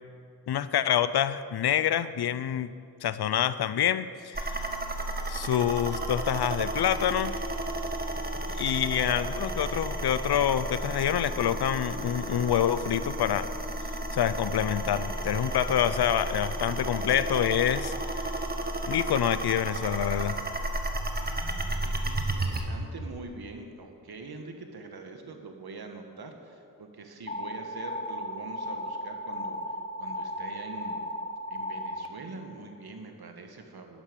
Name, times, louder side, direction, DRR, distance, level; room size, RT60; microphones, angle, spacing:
voice 1, 0.5-2.7 3.0-4.7 5.3-7.3 8.6-13.5 14.1-17.9 18.2-18.3 18.9-20.4, left 10 dB, 75° left, 15 dB, 0.6 m, -27 dB
sound 1, 4.3-22.6, right 1 dB, 25° right, 1.5 m, -33 dB
voice 2, 21.2-31.0 31.5-34.0, right 3 dB, 70° right, 4 dB, 1.6 m, -44 dB
sound 2, 27.3-32.1, left 1 dB, 20° left, 0.8 m, -35 dB
10.5 x 10.0 x 6.8 m, 2.4 s
cardioid pair, 45°, 39 cm